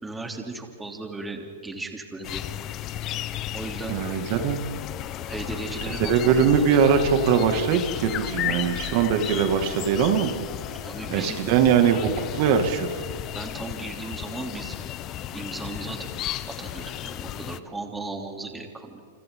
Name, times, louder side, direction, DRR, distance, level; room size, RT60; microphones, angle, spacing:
voice 1, 0.0-2.4 3.5-4.0 5.3-6.7 8.3-8.6 10.8-11.4 13.3-14.8 15.3-16.1 16.5-19.0, right 3 dB, 10° right, 2 dB, 3.2 m, -36 dB
sound 1, 2.2-17.6, left 12 dB, 30° left, 0.8 m, -34 dB
voice 2, 3.9-4.6 6.1-10.3 11.1-12.9, right 7 dB, 50° right, 5 dB, 2.2 m, -21 dB
29.0 x 26.0 x 3.9 m, 2.2 s
hypercardioid pair, 135°, 0 cm